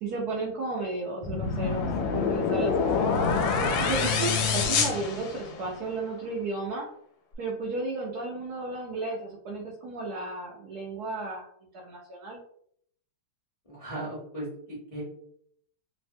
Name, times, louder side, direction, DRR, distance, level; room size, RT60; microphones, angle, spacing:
voice 1, 0.0-3.1 3.6-6.9 7.4-11.5 11.8-12.4, right 3 dB, 70° right, -2 dB, 0.9 m, -33 dB
sound 1, 1.2-5.8, left 5 dB, 80° left, 1.3 m, -26 dB
voice 2, 13.6-15.0, right 1 dB, 35° left, -8 dB, 0.5 m, -37 dB
3.3 x 2.1 x 2.6 m, 0.66 s
omnidirectional pair, 2.1 m